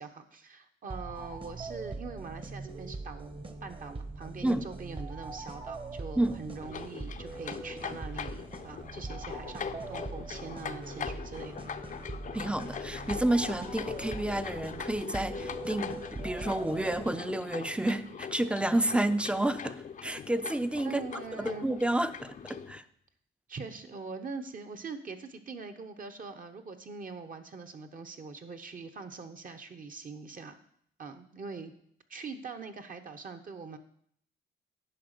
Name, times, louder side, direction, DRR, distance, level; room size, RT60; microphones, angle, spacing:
voice 1, 0.0-11.7 20.8-21.7 23.5-30.6 31.0-31.7 32.1-33.8, right 4 dB, 45° right, 7 dB, 1.1 m, -43 dB
sound 1, 0.9-17.4, right 3 dB, 25° right, 1.1 m, -42 dB
sound 2, 6.6-22.8, left 7 dB, 40° left, 0.6 m, -41 dB
voice 2, 12.3-21.0 21.4-22.8, right 1 dB, 5° right, 12 dB, 0.6 m, -30 dB
10.5 x 5.1 x 6.7 m, 0.66 s
cardioid pair, 90°, 20 cm